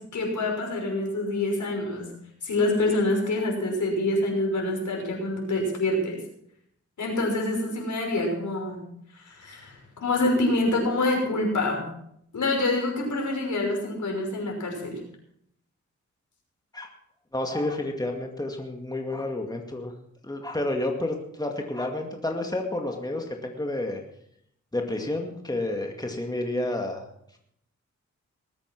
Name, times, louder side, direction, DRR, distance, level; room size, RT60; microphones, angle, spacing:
voice 1, 0.0-2.1 2.4-6.2 7.0-8.8 9.2-11.8 12.3-15.0, left 2 dB, 75° left, 0 dB, 5.9 m, -26 dB
voice 2, 17.3-19.9 20.2-24.0 24.7-27.0, left 1 dB, 15° left, 2 dB, 2.2 m, -30 dB
20.0 x 8.7 x 6.1 m, 0.72 s
cardioid pair, 65°, 30 cm